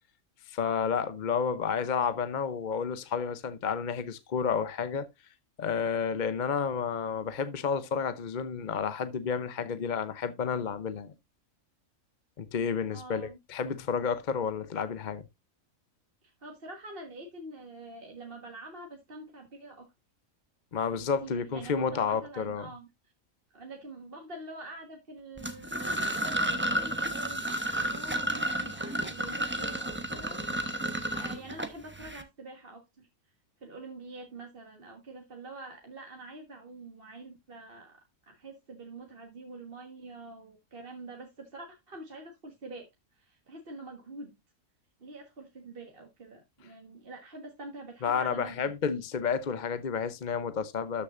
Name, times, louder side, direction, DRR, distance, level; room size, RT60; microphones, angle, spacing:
voice 1, 0.5-5.1 5.6-11.1 12.4-15.2 20.7-22.7 48.0-51.0, left 6 dB, 40° left, 0.8 m, -31 dB
voice 2, 12.9-13.4 16.4-19.9 21.0-22.9 23.5-27.5 27.7-30.4 31.1-33.1 33.6-42.9 43.2-44.4 45.0-48.7, right 2 dB, 45° right, 1.6 m, -46 dB
sound 1, 25.4-32.2, right 1 dB, 10° right, 0.9 m, -32 dB
13.0 x 6.6 x 2.5 m
omnidirectional pair, 1.4 m